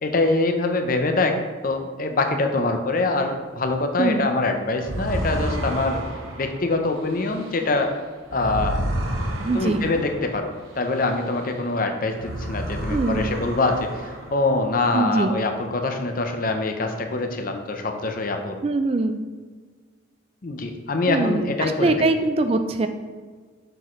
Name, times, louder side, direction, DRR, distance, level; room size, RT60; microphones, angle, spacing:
voice 1, 0.0-6.0 6.4-7.9 8.3-8.9 9.5-18.6 20.4-21.9, left 2 dB, 45° left, 5 dB, 0.7 m, -24 dB
voice 2, 4.0-4.3 9.4-9.9 12.9-13.3 14.9-15.4 18.6-19.2 21.1-22.9, right 2 dB, 30° right, 8 dB, 0.3 m, -22 dB
sound 1, 4.8-11.7 12.0-14.7, right 1 dB, 80° right, 1.0 m, -31 dB
6.7 x 6.3 x 3.1 m, 1.5 s
head